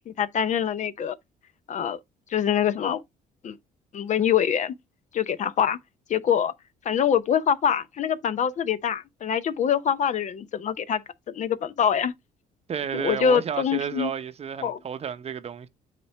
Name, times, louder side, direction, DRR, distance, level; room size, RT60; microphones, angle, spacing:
voice 1, 0.1-1.2 1.7-2.0 2.3-3.0 3.4-3.6 3.9-4.8 5.1-5.8 6.1-6.5 6.8-11.0 11.3-12.1 12.9-14.1 14.6-14.8, left 8 dB, 45° left, 0.6 m, -24 dB
voice 2, 12.7-15.7, right 7 dB, 40° right, 0.7 m, -31 dB
8.4 x 4.4 x 3.3 m
cardioid pair, 110°, 17 cm